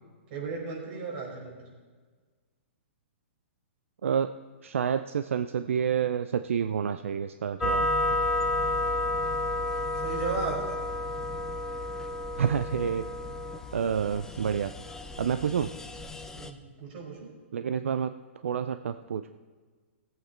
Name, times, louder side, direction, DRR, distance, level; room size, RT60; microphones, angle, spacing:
voice 1, 0.3-1.5 10.0-10.6 16.3-17.3, right 4 dB, 50° right, -2 dB, 4.6 m, -35 dB
voice 2, 4.0-4.3 4.6-7.9 12.4-13.1 13.7-14.7 15.2-15.7 17.5-18.1 18.4-19.3, right 7 dB, 80° right, 10 dB, 0.5 m, -28 dB
sound 1, 7.6-16.5, left 2 dB, 5° left, 0.6 m, -31 dB
17.5 x 8.2 x 4.3 m, 1.5 s
hypercardioid pair, 140°, 7 cm